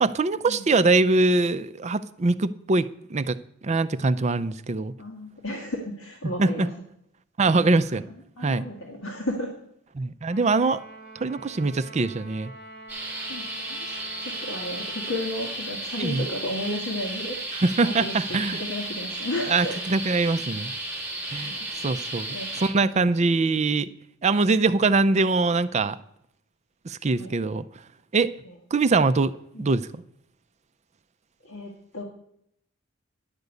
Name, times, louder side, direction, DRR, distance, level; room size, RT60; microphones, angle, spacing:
voice 1, 0.0-3.4 3.6-4.9 6.4-6.7 7.4-8.0 8.4-8.6 9.9-10.8 11.2-12.5 16.0-16.3 17.6-18.6 19.5-20.7 21.3-21.6 21.8-23.9 24.2-26.0 26.8-27.7 28.1-28.3 28.7-29.3 29.6-30.0, right 3 dB, 30° right, 12 dB, 0.4 m, -23 dB
voice 2, 5.0-6.7 7.6-7.7 8.1-9.5 13.3-13.9 14.2-17.4 17.8-18.1 18.5-19.8 21.4-21.7 22.3-22.5 22.8-23.1 27.2-27.3 28.4-28.6 29.5-29.7 31.4-32.0, left 1 dB, 70° left, 0 dB, 1.6 m, -33 dB
Trumpet, 10.3-15.3, right 1 dB, 35° left, 3.0 m, -45 dB
sound 1, 12.9-22.7, right 2 dB, 10° right, 3.7 m, -34 dB
11.0 x 5.2 x 8.1 m, 0.73 s
head